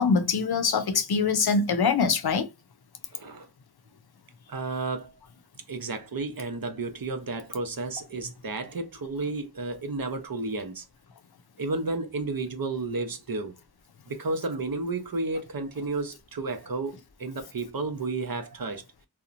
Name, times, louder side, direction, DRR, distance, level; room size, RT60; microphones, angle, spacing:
voice 1, 0.0-2.5, left 5 dB, 80° left, 0.5 m, -23 dB
voice 2, 3.1-3.5 4.5-5.1 5.7-10.9 11.6-13.5 14.1-16.9 17.2-18.8, right 3 dB, 65° right, 0.7 m, -32 dB
2.8 x 2.1 x 2.4 m
wide cardioid pair, 50°, 38 cm